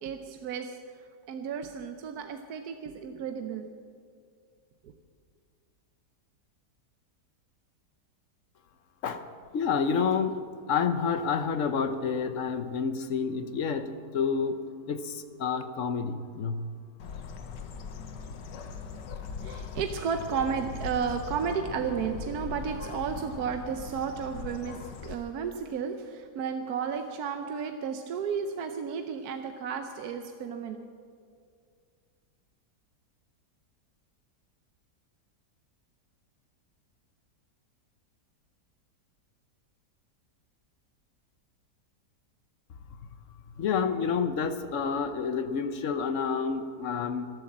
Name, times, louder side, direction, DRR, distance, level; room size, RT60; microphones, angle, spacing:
voice 1, 0.0-3.7 19.4-30.8, right 6 dB, 65° right, 6 dB, 1.2 m, -33 dB
voice 2, 9.5-10.4 10.7-14.6 14.9-16.7 43.6-47.3, left 6 dB, 55° left, 10 dB, 1.0 m, -29 dB
Bird, 17.0-25.1, left 5 dB, 85° left, 1.7 m, -40 dB
13.5 x 12.5 x 7.4 m, 2.2 s
omnidirectional pair, 1.8 m